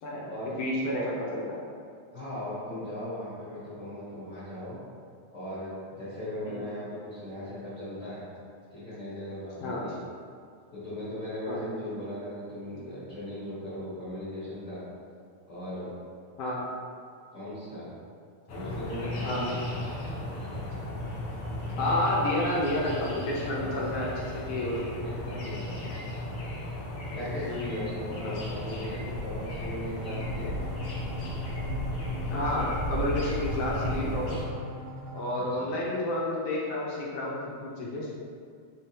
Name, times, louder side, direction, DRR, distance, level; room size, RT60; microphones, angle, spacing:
voice 1, 0.0-0.3 0.6-1.6 6.5-6.6 9.6-9.8 11.5-11.7 16.4-16.7 19.2-19.5 21.8-24.8 27.4-27.8 28.2-28.3 32.3-34.4 35.1-38.1, left 1 dB, 80° left, -4 dB, 1.4 m, -30 dB
voice 2, 2.1-4.8 5.3-8.3 8.7-10.0 10.7-14.8 15.5-15.9 17.3-17.9 18.5-19.5 19.9-20.1 23.5-23.7 24.5-26.1 27.1-30.5 35.3-35.7, left 1 dB, 40° left, -13 dB, 1.1 m, -38 dB
sound 1, 18.5-34.5, left 1 dB, 60° left, 1.7 m, -35 dB
sound 2, 30.0-35.5, left 1 dB, 75° right, 1.4 m, -41 dB
5.3 x 3.5 x 2.8 m, 2.2 s
omnidirectional pair, 3.4 m